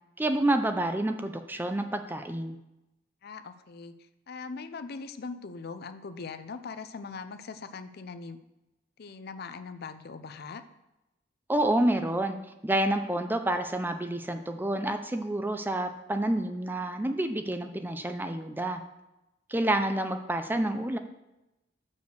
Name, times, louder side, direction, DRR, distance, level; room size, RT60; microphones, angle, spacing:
voice 1, 0.2-2.6 11.5-12.4 12.6-18.8 19.5-21.0, right 1 dB, 10° right, 7 dB, 0.4 m, -28 dB
voice 2, 3.2-3.9 4.3-8.4 9.0-10.6, left 4 dB, 55° left, 11 dB, 0.5 m, -41 dB
6.4 x 5.3 x 6.7 m, 0.95 s
head